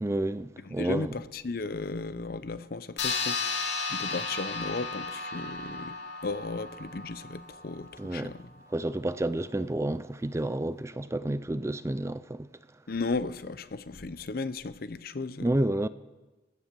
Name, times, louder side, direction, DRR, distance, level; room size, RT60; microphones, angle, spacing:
voice 1, 0.0-1.1 8.0-8.3 8.7-12.5 15.4-15.9, right 1 dB, 15° right, 0.4 m, -30 dB
voice 2, 0.6-3.4 3.9-6.0 6.2-8.5 12.9-15.6, left 3 dB, 55° left, 0.7 m, -35 dB
sound 1, 3.0-7.8, left 4 dB, 85° left, 2.6 m, -34 dB
16.0 x 11.0 x 6.8 m
head